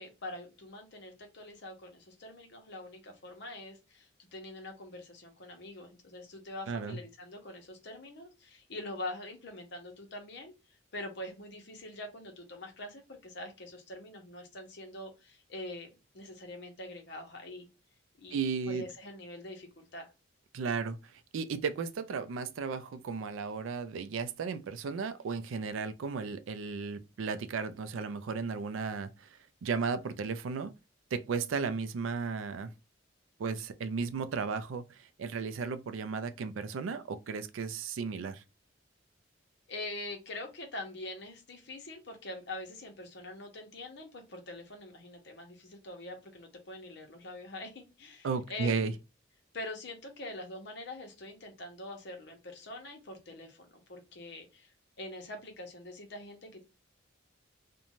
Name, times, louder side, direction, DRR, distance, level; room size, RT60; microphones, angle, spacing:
voice 1, 0.0-10.5 10.9-15.9 16.1-17.7 18.2-18.4 18.7-20.1 39.7-48.9 49.5-54.7 55.0-56.6, left 1 dB, 60° left, 0.8 m, -44 dB
voice 2, 6.7-7.0 18.3-18.8 20.5-21.0 21.3-29.3 29.6-30.7 31.1-32.7 33.4-38.4 48.2-48.9, right 5 dB, 80° right, 0.4 m, -34 dB
2.5 x 2.2 x 2.9 m
head